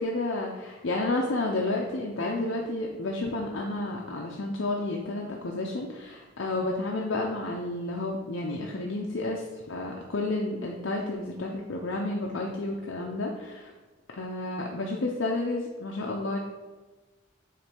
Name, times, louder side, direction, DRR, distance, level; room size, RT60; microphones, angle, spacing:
voice 1, 0.0-13.7 14.2-16.4, left 2 dB, 70° left, -1 dB, 0.8 m, -31 dB
7.5 x 3.3 x 5.3 m, 1.3 s
head